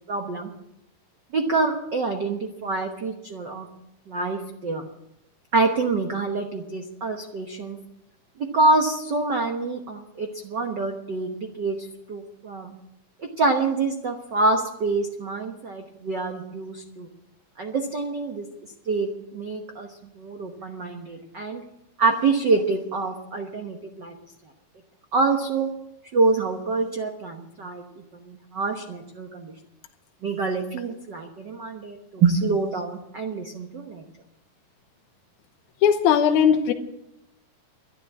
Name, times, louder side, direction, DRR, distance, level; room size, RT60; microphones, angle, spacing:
voice 1, 0.1-0.5 1.3-3.7 4.1-4.9 5.5-7.8 8.5-12.7 13.2-17.1 17.6-18.5 18.9-21.6 22.0-24.1 25.1-25.7 26.1-29.5 30.2-34.0, right 3 dB, 70° right, 4 dB, 1.0 m, -26 dB
voice 2, 35.8-36.7, left 8 dB, 70° left, 5 dB, 2.3 m, -18 dB
11.5 x 11.0 x 8.3 m, 0.83 s
omnidirectional pair, 4.0 m